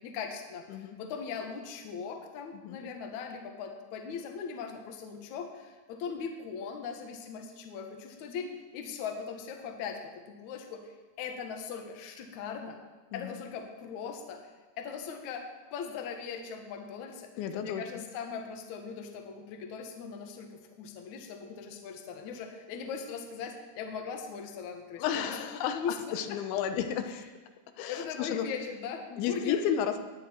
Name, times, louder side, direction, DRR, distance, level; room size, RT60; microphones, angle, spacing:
voice 1, 0.0-12.8 13.1-14.4 14.8-15.4 15.7-26.4 27.1-27.2 27.9-29.6, left 6 dB, 65° left, 3 dB, 2.0 m, -40 dB
voice 2, 17.4-18.1 25.0-25.8 26.1-27.2 27.8-28.5 29.2-30.0, left 8 dB, 90° left, 7 dB, 3.3 m, -32 dB
18.5 x 10.0 x 4.4 m, 1.3 s
omnidirectional pair, 5.2 m